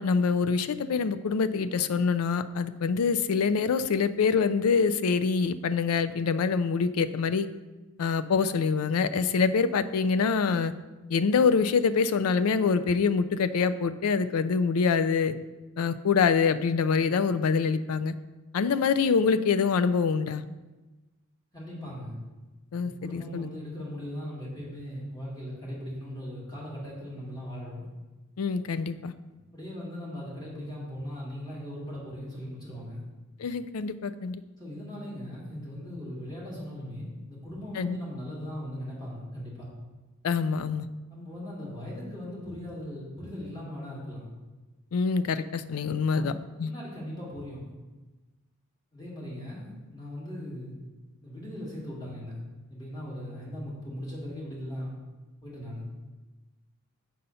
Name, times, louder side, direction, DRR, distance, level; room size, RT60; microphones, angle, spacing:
voice 1, 0.0-7.5 8.0-10.7 11.1-15.3 15.8-18.1 18.5-20.4 22.7-23.5 28.4-29.1 33.4-34.4 37.8-38.0 40.2-40.9 44.9-46.3 46.6-46.7, left 5 dB, 80° left, 13 dB, 0.4 m, -25 dB
voice 2, 21.5-22.2 22.8-27.9 29.5-33.0 34.6-39.7 41.1-44.3 46.1-46.3 46.6-47.7 48.9-50.8 51.2-52.4 52.7-55.0 55.4-55.8, equal, 20° left, -6 dB, 2.3 m, -39 dB
7.6 x 4.1 x 5.5 m, 1.2 s
head